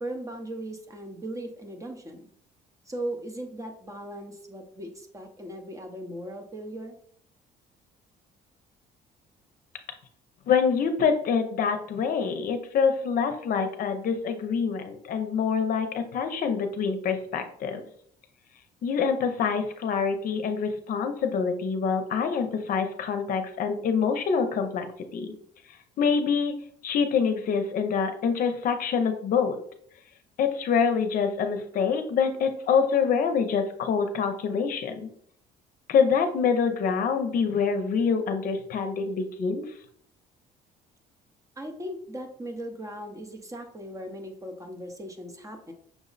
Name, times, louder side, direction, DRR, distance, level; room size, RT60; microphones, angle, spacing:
voice 1, 0.0-2.3 2.9-7.0 41.6-45.7, right 1 dB, 20° right, 4 dB, 0.7 m, -38 dB
voice 2, 10.5-17.8 18.8-24.9 25.1-25.3 26.0-26.5 26.8-29.6 30.4-35.1 35.9-39.6, left 6 dB, 55° left, 7 dB, 0.6 m, -25 dB
6.0 x 2.0 x 3.9 m, 0.63 s
cardioid pair, 110°, 17 cm